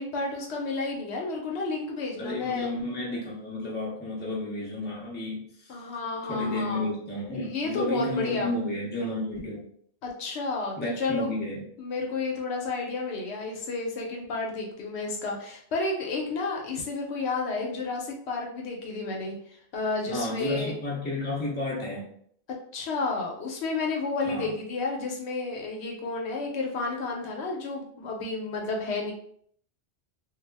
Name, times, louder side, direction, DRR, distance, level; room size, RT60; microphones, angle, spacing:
voice 1, 0.0-2.7 5.7-6.9 7.3-8.5 10.0-11.3 11.8-19.3 19.7-20.8 22.7-29.1, left 3 dB, 80° left, 0 dB, 0.9 m, -31 dB
voice 2, 2.2-5.8 6.3-9.7 10.8-11.6 20.1-22.1 24.2-24.5, left 1 dB, 10° left, -5 dB, 0.6 m, -32 dB
2.3 x 2.0 x 3.3 m, 0.64 s
omnidirectional pair, 1.1 m